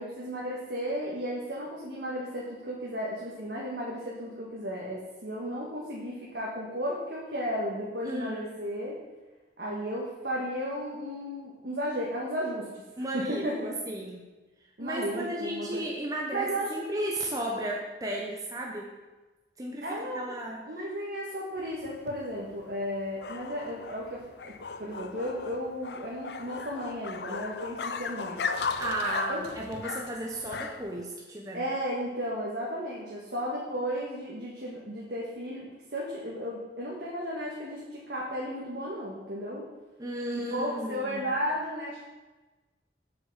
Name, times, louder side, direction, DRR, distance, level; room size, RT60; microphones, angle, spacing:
voice 1, 0.0-9.0 9.6-12.7 13.1-13.7 14.8-15.8 16.3-16.7 19.8-20.3 20.7-24.5 24.8-28.4 29.3-29.4 31.5-39.7 40.5-42.0, equal, 70° right, -4 dB, 1.8 m, -34 dB
voice 2, 8.0-8.5 13.0-14.3 14.8-18.9 19.6-20.6 28.8-31.6 40.0-41.3, right 1 dB, 20° right, -1 dB, 1.0 m, -34 dB
sound 1, 21.6-31.0, left 5 dB, 75° left, 0.6 m, -37 dB
7.5 x 6.3 x 7.4 m, 1.2 s
head